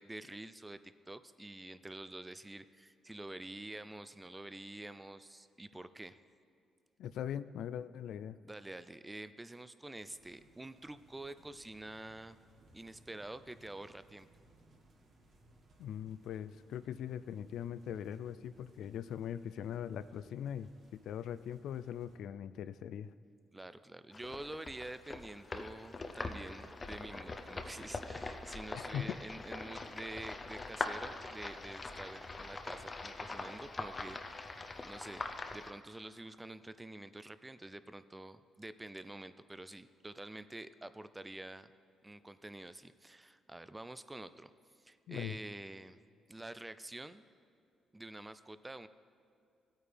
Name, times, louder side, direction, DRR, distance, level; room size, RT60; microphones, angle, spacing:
voice 1, 0.0-6.2 8.4-12.4 12.7-14.3 23.5-41.7 42.0-44.5 44.8-46.0 46.3-47.2 47.9-48.9, right 1 dB, 15° right, 13 dB, 0.4 m, -48 dB
voice 2, 7.0-8.4 15.8-23.1 28.9-29.2 45.1-45.4, left 9 dB, 75° left, 14 dB, 0.3 m, -41 dB
sound 1, 10.0-22.2, right 1 dB, 60° right, 1.8 m, -65 dB
sound 2, 24.1-35.7, left 3 dB, 30° left, 0.7 m, -43 dB
16.0 x 9.0 x 3.4 m, 2.4 s
cardioid pair, 90°, 0 cm